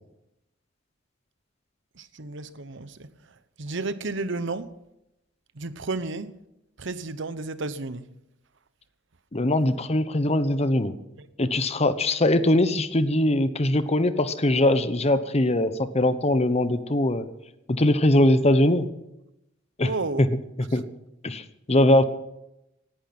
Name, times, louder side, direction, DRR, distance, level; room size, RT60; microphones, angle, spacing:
voice 1, 2.2-2.9 3.6-4.6 5.6-6.3 6.8-8.0 19.8-20.2, right 3 dB, 65° right, 13 dB, 1.0 m, -31 dB
voice 2, 9.3-10.9 11.4-17.3 17.7-18.9 19.8-19.9 20.2-20.8 21.2-22.0, left 1 dB, 35° left, 12 dB, 1.0 m, -21 dB
18.0 x 11.0 x 6.1 m, 0.88 s
head